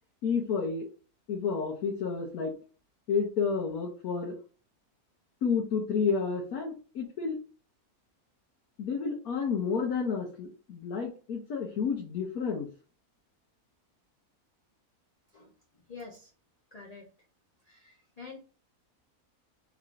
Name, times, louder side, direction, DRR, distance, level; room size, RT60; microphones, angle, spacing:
voice 1, 0.2-0.9 1.3-2.5 3.1-4.4 5.4-7.4 8.8-12.7, left 5 dB, 90° left, -2 dB, 1.3 m, -30 dB
voice 2, 15.9-16.3 16.7-17.1 17.6-18.4, left 4 dB, 35° left, -1 dB, 0.6 m, -47 dB
3.6 x 3.1 x 2.5 m, 0.37 s
omnidirectional pair, 1.5 m